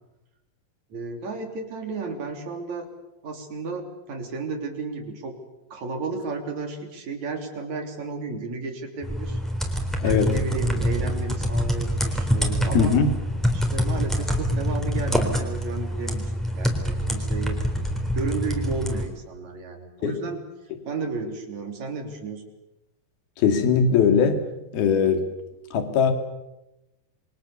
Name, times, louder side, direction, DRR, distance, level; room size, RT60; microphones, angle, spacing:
voice 1, 0.9-2.9 3.2-5.3 5.7-9.4 10.0-13.0 13.5-17.6 18.1-20.4 20.9-22.4, right 4 dB, 50° right, 4 dB, 4.4 m, -33 dB
sound 1, 9.0-19.1, equal, ahead, 3.3 m, -25 dB
voice 2, 10.0-10.4 12.7-13.2 20.0-20.1 23.4-24.5 24.7-25.2 25.7-26.1, left 6 dB, 80° left, 7 dB, 4.2 m, -20 dB
28.5 x 23.0 x 7.2 m, 0.93 s
omnidirectional pair, 4.3 m